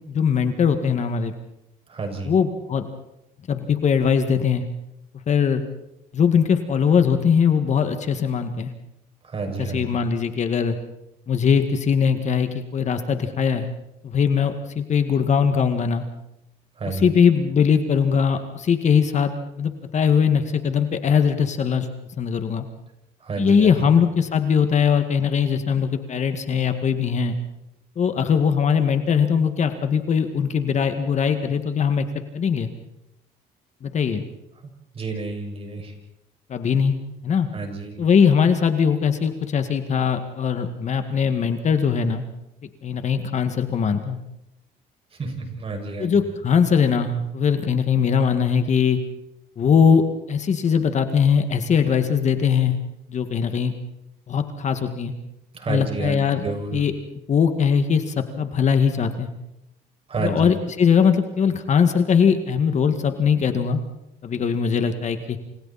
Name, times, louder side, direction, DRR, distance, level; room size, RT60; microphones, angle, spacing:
voice 1, 0.1-1.3 2.2-2.9 3.5-4.6 5.3-5.6 6.1-8.7 9.6-10.8 11.3-13.7 14.0-16.1 16.8-19.3 19.6-21.9 22.2-22.7 23.4-27.4 28.0-32.1 32.3-32.7 33.8-34.2 36.5-37.0 37.2-37.5 38.0-42.2 42.8-44.2 46.0-49.0 49.6-50.0 50.3-52.8 53.1-53.7 54.3-55.1 55.7-56.4 56.7-56.9 57.3-59.3 60.2-63.8 64.2-65.4, left 6 dB, 45° left, 8 dB, 2.0 m, -20 dB
voice 2, 1.9-2.3 9.3-9.8 16.8-17.1 23.2-23.9 34.9-35.9 37.5-37.9 45.2-46.1 55.5-56.8 60.1-60.5, right 3 dB, 35° right, 4 dB, 6.4 m, -30 dB
29.0 x 28.0 x 4.3 m, 0.85 s
cardioid pair, 110°, 17 cm